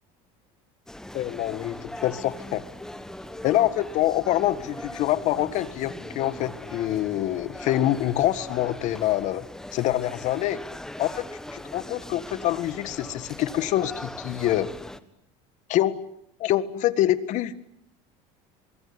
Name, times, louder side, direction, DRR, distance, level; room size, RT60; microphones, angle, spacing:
sound 1, 0.9-15.0, left 1 dB, 5° left, 1.5 m, -40 dB
voice 1, 1.1-2.6 3.4-9.4 9.7-10.6 11.0-11.2 11.5-14.7 15.7-15.9 16.4-17.6, left 13 dB, 55° left, 14 dB, 1.8 m, -25 dB
24.0 x 23.5 x 9.9 m, 0.74 s
cardioid pair, 130°, 15 cm